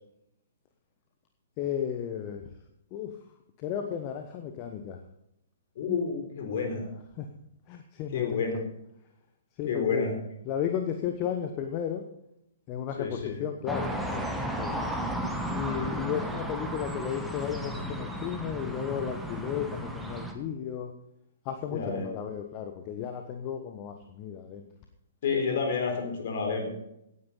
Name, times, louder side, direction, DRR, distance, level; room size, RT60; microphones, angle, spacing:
voice 1, 1.6-2.5 2.9-3.1 3.6-5.0 7.2-7.3 7.7-8.6 9.6-10.1 10.4-12.0 12.7-14.9 15.5-20.9 21.4-24.7, left 9 dB, 30° left, 5 dB, 1.1 m, -34 dB
voice 2, 5.8-6.9 8.1-8.6 9.7-10.2 13.0-13.4 21.7-22.1 25.2-26.7, left 5 dB, 50° left, 3 dB, 3.7 m, -29 dB
sound 1, 13.7-20.3, right 1 dB, ahead, 1.4 m, -34 dB
17.0 x 9.6 x 4.0 m, 0.79 s
figure-of-eight pair, 120°, 0 cm